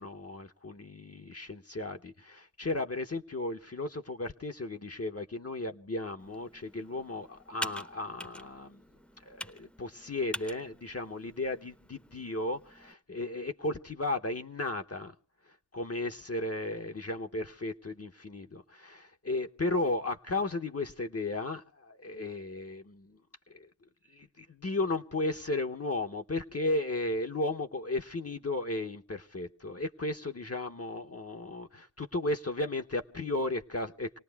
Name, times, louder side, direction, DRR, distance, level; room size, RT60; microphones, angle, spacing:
voice 1, 0.0-8.8 9.3-15.1 15.5-23.2 23.5-23.7 24.1-34.2, left 2 dB, 40° left, 0.7 m, -35 dB
Computer keyboard, 6.2-12.9, equal, 5° left, 0.7 m, -46 dB
28.5 x 18.5 x 2.3 m
wide cardioid pair, 55°, 39 cm